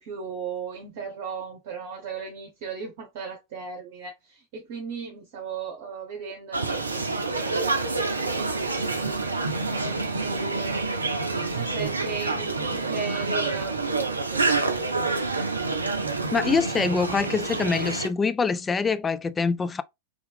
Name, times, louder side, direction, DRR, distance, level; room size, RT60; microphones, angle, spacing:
voice 1, 0.0-7.8 8.2-10.8 11.3-15.1, right 5 dB, 50° right, 0.9 m, -37 dB
sound 1, 6.5-18.1, right 3 dB, 80° right, 0.5 m, -27 dB
voice 2, 16.3-19.8, left 5 dB, 15° left, 0.3 m, -24 dB
3.6 x 3.0 x 3.4 m
figure-of-eight pair, 90°, 0 cm